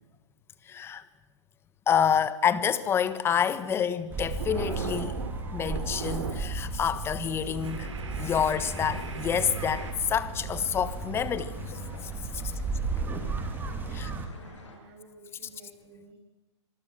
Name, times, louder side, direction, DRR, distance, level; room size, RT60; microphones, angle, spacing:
voice 1, 0.7-1.0 1.9-5.1 5.5-11.5 13.9-14.1, left 8 dB, 15° left, 1.4 m, -28 dB
sound 1, 3.5-3.8 4.1-6.6 6.9-7.1 7.6-9.9, right 5 dB, 85° right, 5.2 m, -39 dB
sound 2, 4.1-14.3, right 4 dB, 10° right, 2.8 m, -35 dB
sound 3, 9.7-14.8, left 3 dB, 90° left, 7.9 m, -48 dB
voice 2, 12.3-12.6 13.8-16.1, right 3 dB, 35° right, 7.0 m, -53 dB
26.0 x 20.0 x 7.8 m
hypercardioid pair, 140°, 15 cm